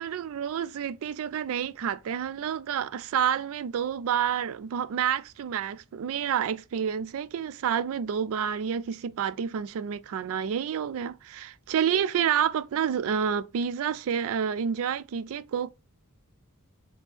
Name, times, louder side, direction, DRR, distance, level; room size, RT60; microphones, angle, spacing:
voice 1, 0.0-15.7, right 8 dB, 70° right, 0.3 m, -29 dB
3.5 x 2.9 x 4.4 m
head